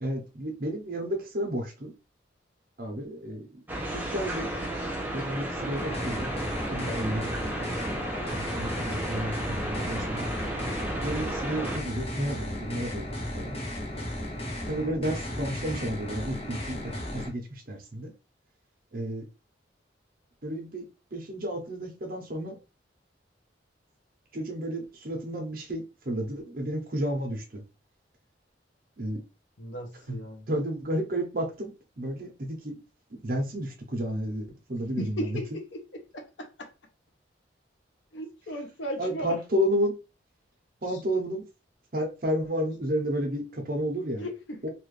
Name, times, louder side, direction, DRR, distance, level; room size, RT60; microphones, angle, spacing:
voice 1, 0.0-1.9 2.8-3.6 3.9-4.5 4.8-6.3 6.7-7.3 8.5-10.3 11.0-13.1 13.3-13.6 14.7-16.8 17.1-18.1 18.9-19.3 20.4-20.9 21.1-22.6 24.3-27.6 29.0-29.2 30.1-30.2 30.5-32.8 33.2-35.4 39.0-39.9 40.8-41.4 41.9-44.3 44.6-44.7, equal, 50° right, 0.8 m, -31 dB
sound 1, 3.7-11.8, right 1 dB, 10° right, 0.7 m, -33 dB
sound 2, 5.8-17.3, left 1 dB, 35° left, 0.9 m, -35 dB
voice 2, 8.7-9.1 29.6-30.5 35.0-36.7 38.1-39.4 44.2-44.7, equal, 80° left, 0.8 m, -37 dB
3.0 x 2.5 x 3.2 m
head